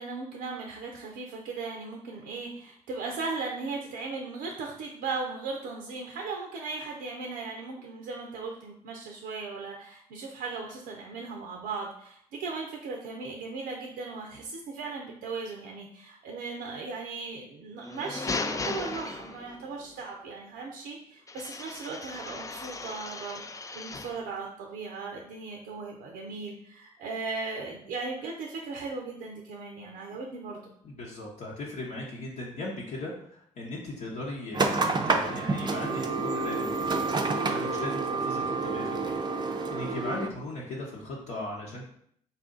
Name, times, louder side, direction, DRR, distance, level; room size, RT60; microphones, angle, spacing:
voice 1, 0.0-30.7, right 4 dB, 80° right, 1 dB, 0.5 m, -37 dB
sound 1, 17.8-19.7 21.3-24.3, left 3 dB, 20° left, 0.4 m, -36 dB
voice 2, 30.8-41.9, left 2 dB, 65° left, -5 dB, 0.9 m, -38 dB
sound 2, 34.5-40.3, right 3 dB, 30° right, 0.5 m, -28 dB
4.1 x 2.5 x 3.7 m, 0.66 s
hypercardioid pair, 50°, 15 cm